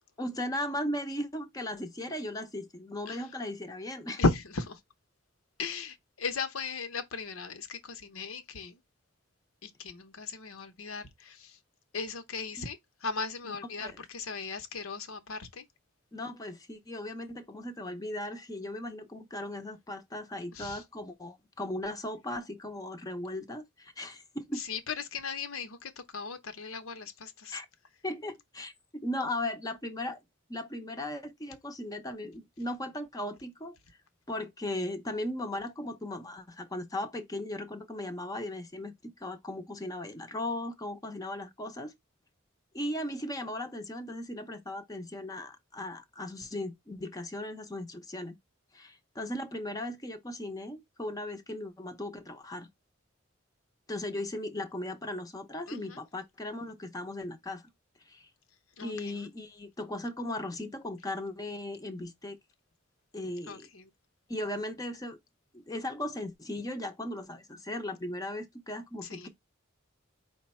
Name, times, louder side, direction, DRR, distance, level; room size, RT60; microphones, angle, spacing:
voice 1, 0.2-4.2 12.6-12.7 13.4-14.1 16.1-24.6 27.5-27.7 28.0-30.2 30.5-33.8 34.3-41.9 42.7-48.4 48.7-52.7 53.9-57.6 58.1-58.3 58.8-62.4 63.1-63.7 64.3-65.2 65.5-69.3, left 1 dB, 20° left, 0.5 m, -37 dB
voice 2, 4.2-4.8 5.6-8.8 9.6-11.6 11.9-15.6 20.5-20.8 24.6-27.6 55.7-56.0 58.8-59.1 63.5-63.9 69.0-69.3, left 4 dB, 85° left, 0.8 m, -36 dB
4.8 x 2.2 x 4.2 m
head